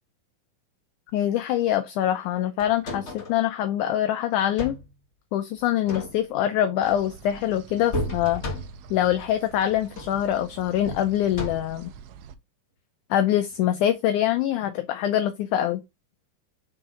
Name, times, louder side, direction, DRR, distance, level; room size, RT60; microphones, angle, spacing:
voice 1, 1.1-4.8 5.3-8.4 8.9-11.9 13.1-15.8, left 11 dB, 75° left, 2.0 m, -24 dB
sound 1, 2.6-3.4 4.3-4.9 5.7-6.5 7.9-9.0 9.8-10.2 10.8-11.9 13.5-13.7, left 1 dB, 35° left, 1.2 m, -34 dB
sound 2, 6.8-12.3, right 7 dB, 85° right, 1.5 m, -45 dB
5.7 x 4.0 x 4.9 m
omnidirectional pair, 3.8 m